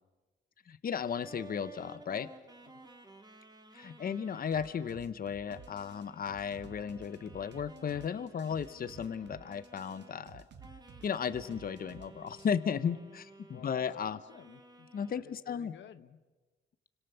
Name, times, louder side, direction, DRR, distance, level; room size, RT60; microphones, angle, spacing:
voice 1, 0.7-2.3 3.7-10.4 11.0-14.2 14.9-15.8, left 7 dB, 45° left, 13 dB, 1.2 m, -35 dB
sound 1, 1.1-5.0 5.4-10.3 10.6-13.9 14.3-15.2, right 2 dB, 20° right, 3.3 m, -55 dB
sound 2, 4.5-12.5, right 6 dB, 60° right, 2.3 m, -53 dB
voice 2, 13.5-16.2, left 9 dB, 70° left, 11 dB, 1.2 m, -53 dB
29.5 x 26.0 x 7.1 m, 1.2 s
cardioid pair, 90°, 20 cm